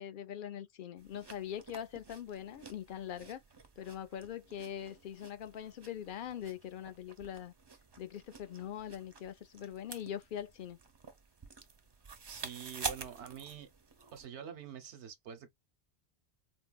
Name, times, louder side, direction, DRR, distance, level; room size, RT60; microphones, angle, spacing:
voice 1, 0.0-3.4 3.8-7.5 8.0-10.8, left 10 dB, 55° left, 0.7 m, -42 dB
sound 1, 1.0-14.3, right 5 dB, 35° right, 0.4 m, -48 dB
voice 2, 12.2-13.7 14.1-15.5, right 8 dB, 90° right, 1.0 m, -46 dB
4.4 x 2.0 x 2.2 m
omnidirectional pair, 1.1 m